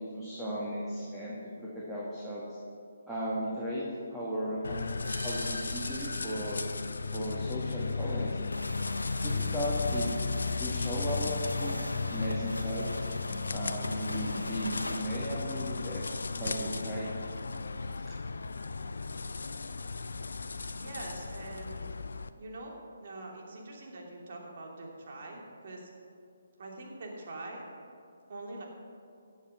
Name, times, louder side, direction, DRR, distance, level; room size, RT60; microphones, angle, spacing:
voice 1, 0.1-2.6 3.1-3.9 4.1-4.8 5.2-6.6 7.1-8.5 9.2-10.1 10.6-13.0 13.5-16.0 16.3-17.1, equal, 5° right, -9 dB, 2.1 m, -36 dB
sound 1, 4.6-22.3, left 4 dB, 70° left, 0.6 m, -35 dB
sound 2, 5.0-8.4, right 3 dB, 70° right, 1.0 m, -48 dB
sound 3, 8.5-15.1, left 1 dB, 85° left, 1.1 m, -41 dB
voice 2, 20.7-21.9 22.4-25.9 26.6-27.6 28.3-28.6, right 2 dB, 50° right, -1 dB, 2.9 m, -44 dB
17.0 x 7.3 x 5.8 m, 2.4 s
figure-of-eight pair, 145°, 0 cm